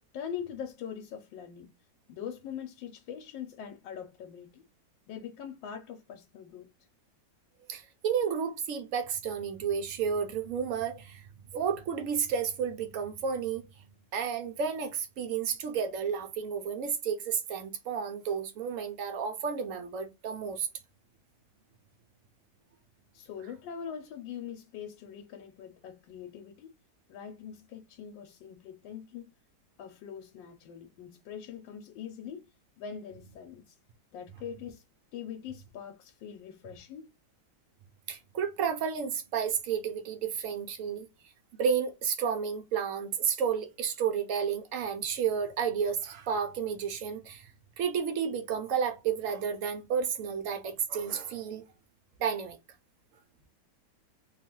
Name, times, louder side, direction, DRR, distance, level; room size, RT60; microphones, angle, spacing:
voice 1, 0.1-1.7 2.1-4.6 5.1-6.7 23.1-26.8 27.1-29.3 29.8-32.5 32.8-33.8 34.1-34.8 35.1-37.1, left 8 dB, 90° left, 1.3 m, -42 dB
voice 2, 7.7-13.6 14.1-20.7 38.1-41.1 41.6-47.5 47.8-51.6 52.2-52.6, right 7 dB, 75° right, 0.7 m, -31 dB
3.0 x 2.3 x 2.9 m
omnidirectional pair, 2.0 m